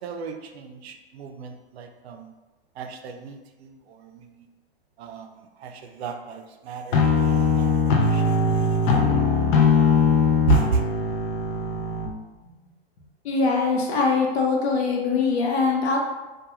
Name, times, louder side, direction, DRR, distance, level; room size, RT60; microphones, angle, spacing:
voice 1, 0.0-2.3 2.8-4.5 5.0-9.0 10.5-10.8, right 5 dB, 80° right, 5 dB, 0.5 m, -32 dB
sound 1, 6.9-12.1, left 4 dB, 55° left, 0.5 m, -20 dB
voice 2, 13.2-16.0, left 4 dB, 85° left, -1 dB, 0.8 m, -22 dB
2.3 x 2.3 x 2.9 m, 1.1 s
hypercardioid pair, 145°, 31 cm